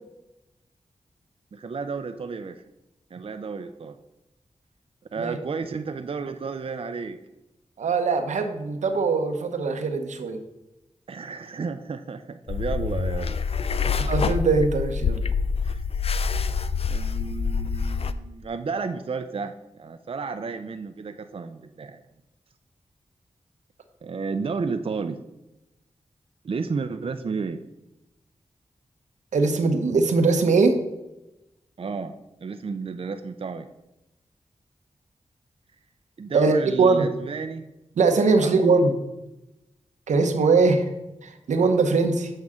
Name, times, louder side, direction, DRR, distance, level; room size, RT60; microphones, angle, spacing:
voice 1, 1.5-2.6 3.1-4.0 5.1-7.2 11.1-13.4 13.8-14.0 15.6-15.8 16.9-22.0 24.0-25.2 26.4-27.6 31.8-32.1 32.4-33.7 36.2-37.7 38.3-38.6, right 4 dB, 50° right, 8 dB, 0.5 m, -32 dB
voice 2, 7.8-10.4 13.9-15.2 29.3-30.8 36.3-37.1 38.0-38.9 40.1-40.8 41.2-42.3, right 4 dB, 90° right, 6 dB, 0.7 m, -21 dB
sound 1, 12.5-18.1, left 5 dB, 55° left, 0.4 m, -26 dB
7.6 x 5.4 x 3.6 m, 0.95 s
cardioid pair, 45°, 12 cm